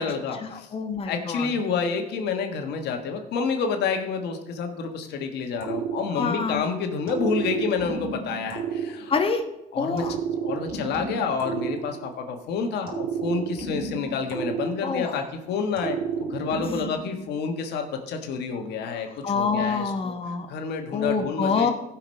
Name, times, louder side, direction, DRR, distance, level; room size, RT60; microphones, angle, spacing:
voice 1, 0.0-0.7 1.0-9.1 9.7-10.0 10.4-19.1 19.3-19.9 20.5-21.7, left 5 dB, 80° left, 5 dB, 1.4 m, -29 dB
voice 2, 0.5-1.5 6.1-6.6 9.1-9.4 9.8-10.2 14.8-15.2 19.2-20.5 20.9-21.7, left 5 dB, 35° left, 5 dB, 1.2 m, -26 dB
sound 1, 5.6-6.6 7.1-9.5 10.0-12.4 12.9-15.3 15.8-17.2, right 6 dB, 65° right, 3.1 m, -31 dB
14.5 x 6.0 x 5.3 m, 0.89 s
cardioid pair, 90°, 17 cm